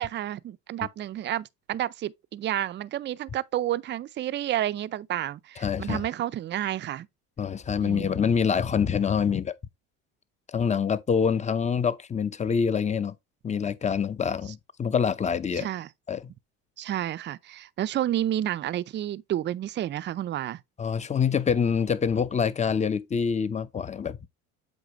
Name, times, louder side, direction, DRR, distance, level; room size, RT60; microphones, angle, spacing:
voice 1, 0.0-7.1 7.8-8.2 15.5-15.9 16.8-20.6, right 12 dB, 30° right, 0.5 m, -30 dB
voice 2, 5.6-6.1 7.4-9.5 10.5-13.1 13.4-15.7 16.1-16.3 20.8-24.2, left 6 dB, 20° left, 0.6 m, -26 dB
8.1 x 5.1 x 3.0 m
supercardioid pair, 85°, 36 cm